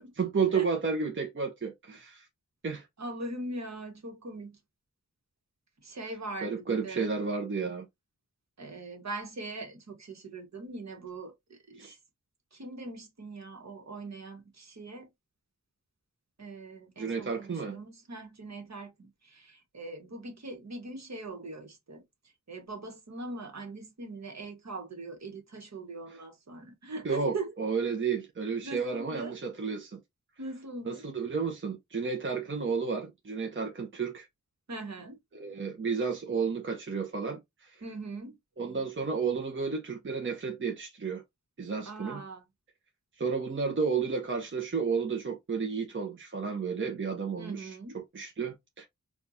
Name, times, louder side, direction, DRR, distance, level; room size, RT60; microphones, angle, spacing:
voice 1, 0.2-2.3 2.6-2.9 6.4-7.9 11.8-11.9 17.0-17.8 27.0-30.0 30.9-34.3 35.3-37.8 38.6-41.2 41.6-42.2 43.2-47.7 47.9-48.8, right 5 dB, 40° right, 0.7 m, -32 dB
voice 2, 3.0-4.6 5.8-7.1 8.6-12.0 12.5-15.1 16.4-22.0 22.5-27.5 28.6-29.3 30.4-31.0 34.7-35.2 37.8-38.4 41.8-42.4 47.4-48.0, right 2 dB, 65° right, 1.2 m, -41 dB
4.4 x 2.4 x 2.6 m
wide cardioid pair, 75°, 30 cm